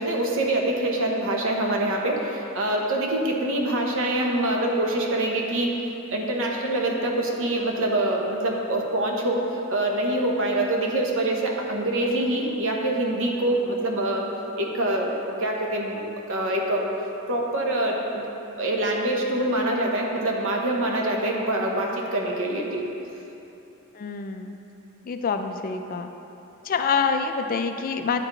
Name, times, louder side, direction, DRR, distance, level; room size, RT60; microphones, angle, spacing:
voice 1, 0.0-5.7 6.1-9.4 9.7-14.3 14.6-16.0 16.3-16.9 17.3-18.2 18.6-22.8, right 1 dB, 65° right, 0 dB, 0.9 m, -25 dB
voice 2, 23.9-24.5 25.1-26.1 26.6-28.2, left 5 dB, 40° left, 7 dB, 0.3 m, -26 dB
9.6 x 4.6 x 3.8 m, 3.0 s
head